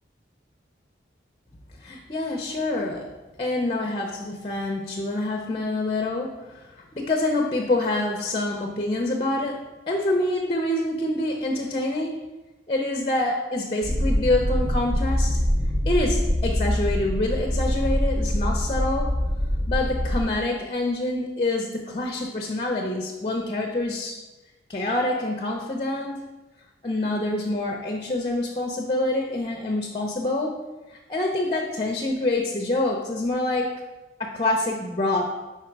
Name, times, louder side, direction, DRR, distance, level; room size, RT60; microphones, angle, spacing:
voice 1, 1.8-3.1 3.4-9.6 9.9-12.2 12.7-15.4 15.9-19.2 19.7-24.1 24.7-26.2 26.8-30.6 30.9-33.7 34.2-35.3, left 2 dB, 30° left, 1 dB, 0.6 m, -26 dB
sound 1, 13.8-20.2, equal, 70° right, 2.2 m, -24 dB
4.9 x 4.6 x 4.5 m, 1.1 s
head